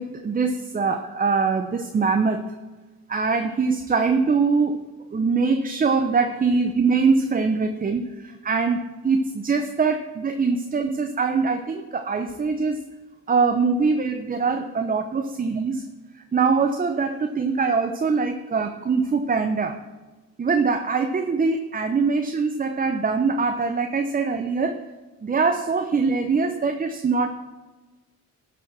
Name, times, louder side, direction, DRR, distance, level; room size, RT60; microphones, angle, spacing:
voice 1, 0.0-2.4 3.1-4.9 5.1-12.8 13.3-15.8 16.3-19.8 20.4-24.8 25.2-27.3, right 4 dB, 30° right, 6 dB, 0.8 m, -23 dB
12.5 x 5.1 x 6.1 m, 1.2 s
cardioid pair, 90°, 30 cm